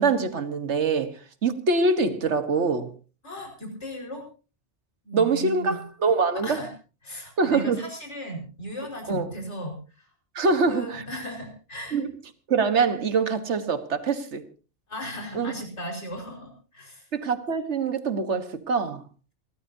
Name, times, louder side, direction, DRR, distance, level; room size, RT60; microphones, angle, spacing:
voice 1, 0.0-2.9 5.1-6.6 7.4-7.8 9.1-9.3 10.3-11.0 11.9-12.1 12.5-14.4 15.3-15.5 17.1-19.0, right 4 dB, 80° right, 1.7 m, -24 dB
voice 2, 3.2-4.2 5.0-5.8 6.4-6.7 7.0-10.1 10.4-12.0 14.9-17.1, equal, 75° left, 5.3 m, -36 dB
28.0 x 13.0 x 2.8 m
omnidirectional pair, 1.2 m